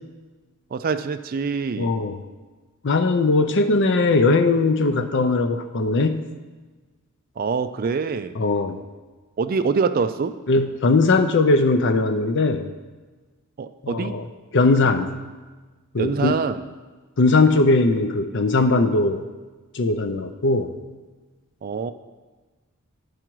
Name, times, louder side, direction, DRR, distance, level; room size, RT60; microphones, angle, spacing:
voice 1, 0.7-1.9 7.4-8.3 9.4-10.4 13.6-14.1 16.0-16.6 21.6-21.9, right 5 dB, 40° right, 11 dB, 0.3 m, -25 dB
voice 2, 1.8-2.2 2.8-6.2 8.3-8.8 10.5-12.7 13.8-14.3 14.5-15.2 15.9-16.3 17.2-19.3 19.7-20.8, left 3 dB, 55° left, 9 dB, 0.6 m, -19 dB
11.5 x 4.9 x 4.6 m, 1.3 s
head